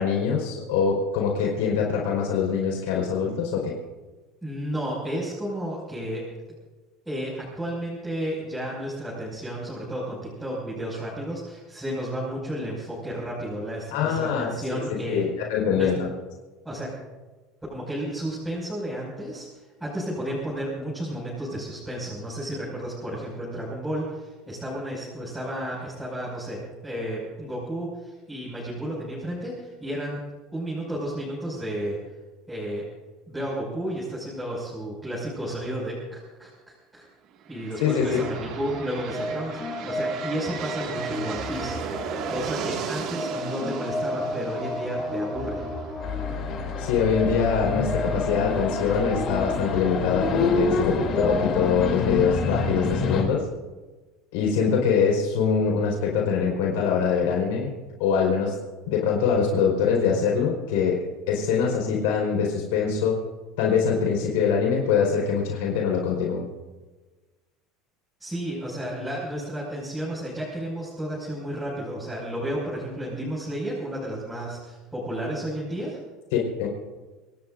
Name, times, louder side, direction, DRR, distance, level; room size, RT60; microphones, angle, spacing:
voice 1, 0.0-3.7 13.9-14.8 15.1-16.1 37.8-38.2 46.8-53.4 54.3-57.7 58.0-58.5 58.9-61.0 61.3-63.2 63.6-66.5 76.3-76.7, left 6 dB, 90° left, -1 dB, 4.5 m, -23 dB
voice 2, 4.4-6.2 7.0-15.2 15.7-15.9 16.6-16.9 17.7-19.5 19.8-30.2 30.5-32.0 32.5-32.8 33.3-37.0 37.5-41.8 42.0-45.6 68.2-76.0, right 1 dB, 5° right, -8 dB, 6.0 m, -32 dB
sound 1, 37.4-47.2, right 7 dB, 50° right, 2.0 m, -36 dB
sound 2, 38.0-51.8, left 1 dB, 15° left, 5.7 m, -33 dB
sound 3, 46.0-53.2, left 4 dB, 45° left, 3.1 m, -27 dB
26.5 x 18.5 x 2.6 m, 1.3 s
cardioid pair, 150°, 0 cm